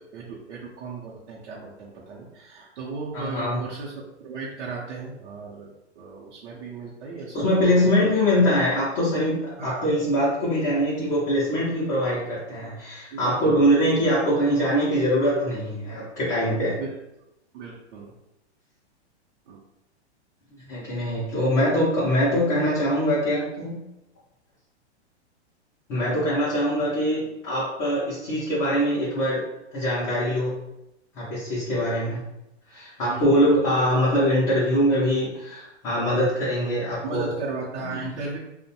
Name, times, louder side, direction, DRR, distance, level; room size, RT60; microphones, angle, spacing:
voice 1, 0.0-8.1 9.6-10.0 13.1-13.7 16.6-16.9 17.5-18.1 19.5-19.6 33.1-33.6 37.0-38.4, right 4 dB, 70° right, -4 dB, 0.7 m, -36 dB
voice 2, 3.1-3.6 7.3-16.8 20.7-23.8 25.9-29.4 29.7-30.5 31.1-32.2 32.7-37.3 37.8-38.1, equal, 20° left, -8 dB, 0.4 m, -23 dB
2.5 x 2.1 x 2.7 m, 0.88 s
hypercardioid pair, 150°, 34 cm